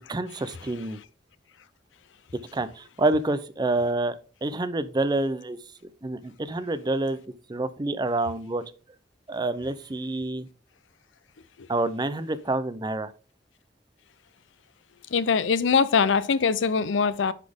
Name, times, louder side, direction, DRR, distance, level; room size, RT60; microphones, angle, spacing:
voice 1, 0.1-1.0 2.5-4.1 4.4-5.6 6.0-7.2 7.5-8.6 9.3-10.5 11.7-13.1, right 2 dB, 25° right, 0.5 m, -27 dB
voice 2, 15.1-17.3, left 5 dB, 90° left, 0.5 m, -22 dB
9.8 x 4.1 x 3.5 m
head